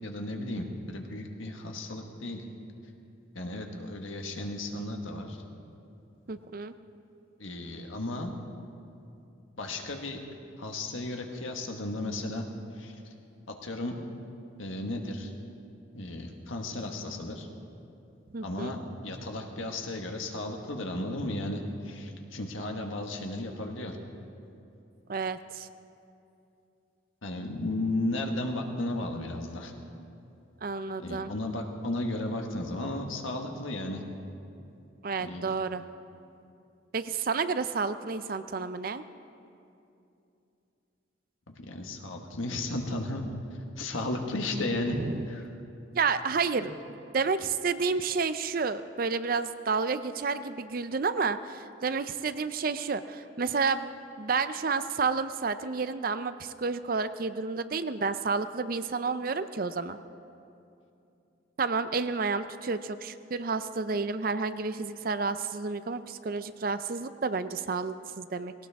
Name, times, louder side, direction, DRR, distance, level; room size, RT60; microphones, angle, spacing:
voice 1, 0.0-2.4 3.3-5.4 7.4-8.3 9.6-10.2 10.6-12.5 12.8-13.0 13.5-14.0 14.6-15.3 15.9-17.5 18.4-24.0 27.2-29.7 31.0-34.0 35.2-35.4 41.6-43.2 43.8-45.0 45.3-45.4 46.6-46.7, left 2 dB, 90° left, 3 dB, 1.5 m, -34 dB
voice 2, 6.3-6.7 18.3-18.8 25.1-25.7 30.6-31.3 35.0-35.8 36.9-39.0 44.9-45.3 45.9-46.7 47.1-53.9 54.2-60.0 61.6-68.5, right 4 dB, 45° right, 12 dB, 0.5 m, -30 dB
19.0 x 17.5 x 3.6 m, 2.7 s
head